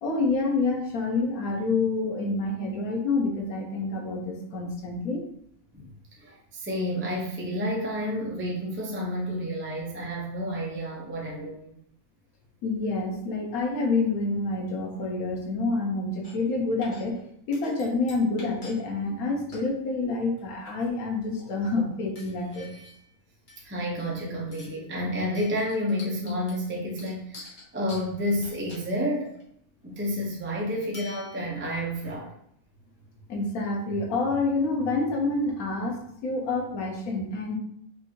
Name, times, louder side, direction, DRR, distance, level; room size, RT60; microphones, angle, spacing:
voice 1, 0.0-5.2 12.6-17.2 17.5-22.7 33.3-37.6, left 3 dB, 85° left, 1 dB, 1.3 m, -28 dB
voice 2, 6.2-11.8 23.6-29.3 29.8-32.3, equal, 15° right, -3 dB, 0.5 m, -30 dB
sound 1, 16.2-16.5 16.8-17.2 17.5-18.8 19.0-19.1 19.5-19.7 20.4-21.0 21.3-21.6 22.2-23.1 23.5-24.2 24.5-24.9 25.3-29.4 30.9-31.8, left 3 dB, 40° left, 1.1 m, -48 dB
5.3 x 2.7 x 2.8 m, 0.68 s
omnidirectional pair, 1.5 m